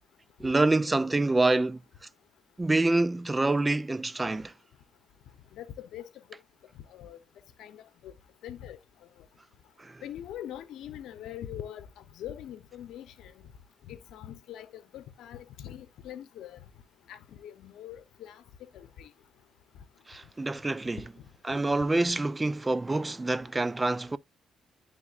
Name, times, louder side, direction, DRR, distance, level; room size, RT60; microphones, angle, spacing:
voice 1, 0.4-1.8 2.6-4.5 9.8-10.0 20.1-21.0 21.4-24.2, right 2 dB, 20° right, 0.4 m, -26 dB
voice 2, 5.5-6.1 6.9-7.2 7.6-8.1 8.4-8.8 10.0-11.9 12.1-13.3 13.9-16.6 17.1-18.4 18.7-19.1, left 11 dB, 80° left, 0.7 m, -43 dB
11.0 x 3.6 x 2.4 m
cardioid pair, 90°, 0 cm